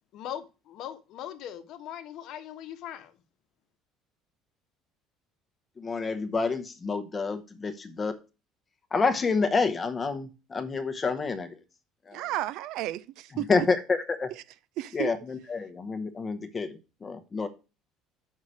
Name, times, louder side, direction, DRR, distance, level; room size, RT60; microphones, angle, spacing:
voice 1, 0.1-3.2, left 10 dB, 55° left, 1.0 m, -40 dB
voice 2, 5.8-8.1 8.9-11.6 12.1-12.2 13.3-14.3 14.9-17.5, left 4 dB, 20° left, 0.8 m, -28 dB
voice 3, 12.1-13.7 14.8-15.1, right 14 dB, 60° right, 0.4 m, -33 dB
6.5 x 5.5 x 6.2 m
cardioid pair, 165°, 0 cm